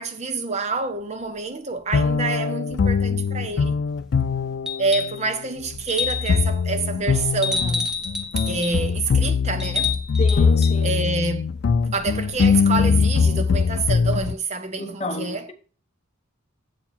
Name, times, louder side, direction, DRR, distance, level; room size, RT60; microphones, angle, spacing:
voice 1, 0.0-3.8 4.8-7.9 8.5-10.0 10.8-11.5 11.9-15.5, right 3 dB, 30° right, 0.6 m, -27 dB
sound 1, 1.9-14.3, left 5 dB, 50° left, 0.3 m, -22 dB
sound 2, 4.7-5.2 5.9-6.5 7.4-8.8 9.6-10.8 12.4-12.5, left 5 dB, 5° right, 0.8 m, -28 dB
voice 2, 10.2-10.9 14.8-15.5, left 1 dB, 30° left, 0.9 m, -30 dB
8.3 x 4.7 x 5.6 m
head